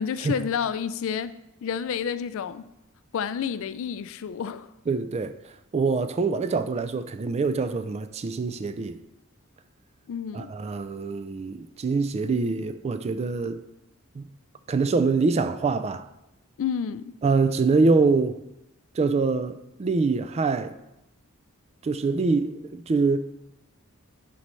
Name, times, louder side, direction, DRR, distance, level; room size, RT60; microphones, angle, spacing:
voice 1, 0.0-1.3 1.6-2.7 3.1-4.7 10.1-10.5 16.6-17.1, left 7 dB, 65° left, 0.3 m, -30 dB
voice 2, 4.9-5.3 5.7-9.0 10.3-13.6 14.1-14.2 14.7-16.1 17.2-18.4 18.9-20.7 21.8-23.2, right 4 dB, 30° right, 0.3 m, -24 dB
11.0 x 4.2 x 3.2 m
head